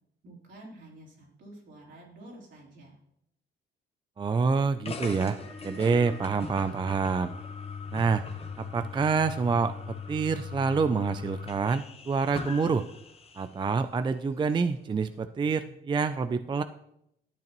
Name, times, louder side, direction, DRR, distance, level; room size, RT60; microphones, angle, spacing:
voice 1, 0.2-3.0, right 1 dB, 65° right, -3 dB, 3.6 m, -49 dB
voice 2, 4.2-5.4 5.6-7.3 7.9-8.3 8.6-12.9 13.4-16.6, right 5 dB, 25° right, 11 dB, 0.4 m, -27 dB
sound 1, 4.8-13.6, left 5 dB, 30° left, 1.1 m, -40 dB
12.0 x 7.8 x 3.0 m, 0.77 s
cardioid pair, 90°, 20 cm